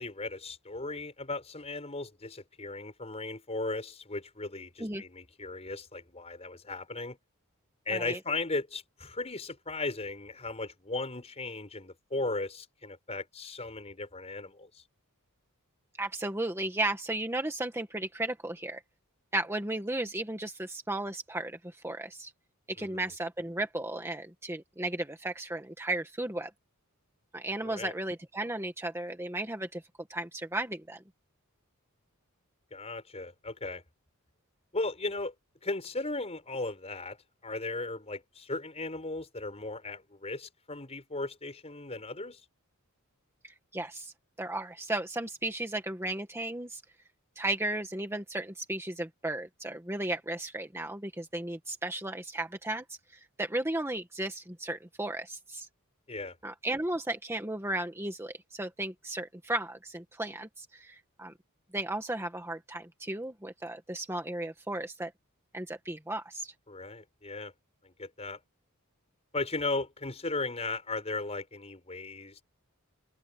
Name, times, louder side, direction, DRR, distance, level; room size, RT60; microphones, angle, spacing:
voice 1, 0.0-7.2 7.9-14.8 22.8-23.0 27.6-27.9 32.7-33.8 34.7-35.3 35.6-37.2 37.4-42.4 56.1-56.4 66.7-67.5 67.8-68.4 69.3-72.4, left 3 dB, 30° left, 5.6 m, -36 dB
voice 2, 16.0-18.8 19.3-22.3 22.7-26.5 27.3-29.8 30.1-31.0 43.4-44.1 44.4-46.8 47.3-55.7 56.4-61.3 61.7-65.1 65.5-66.5, right 1 dB, 10° right, 1.6 m, -35 dB
head